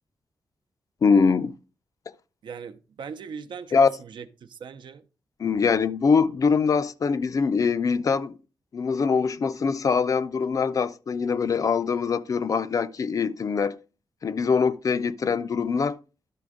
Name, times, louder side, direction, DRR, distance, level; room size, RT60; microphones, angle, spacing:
voice 1, 1.0-1.5 3.7-3.9 5.4-8.3 8.7-13.8 14.2-16.0, left 5 dB, 45° left, 0.4 m, -23 dB
voice 2, 2.4-5.0, right 6 dB, 75° right, 0.7 m, -40 dB
11.5 x 4.2 x 4.9 m
wide cardioid pair, 150°, 8 cm